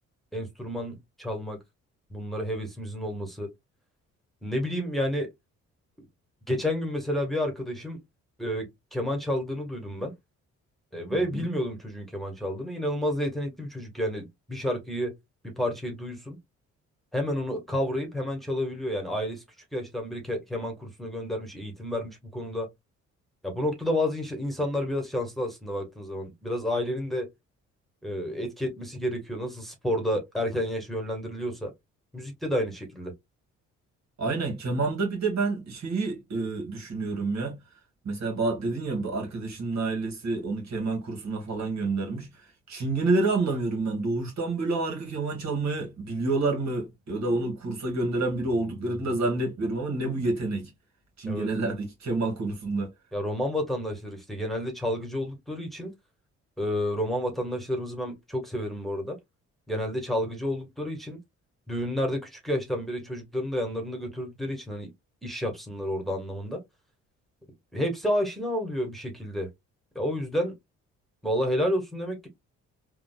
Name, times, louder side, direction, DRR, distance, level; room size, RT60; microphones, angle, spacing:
voice 1, 0.3-1.6 2.1-3.5 4.4-5.3 6.5-8.0 8.4-10.1 10.9-15.1 15.4-16.4 17.1-19.4 19.7-22.7 23.4-27.3 28.0-31.7 32.1-33.1 51.2-51.5 53.1-55.9 56.6-59.2 59.7-61.2 61.7-64.9 65.2-66.6 67.7-69.5 69.9-70.5 71.2-72.3, left 1 dB, ahead, 1.5 m, -30 dB
voice 2, 11.1-11.5 34.2-37.6 38.1-42.3 42.7-50.7 51.2-52.9, right 3 dB, 55° right, 1.8 m, -28 dB
3.7 x 2.4 x 2.3 m
hypercardioid pair, 55°, 34 cm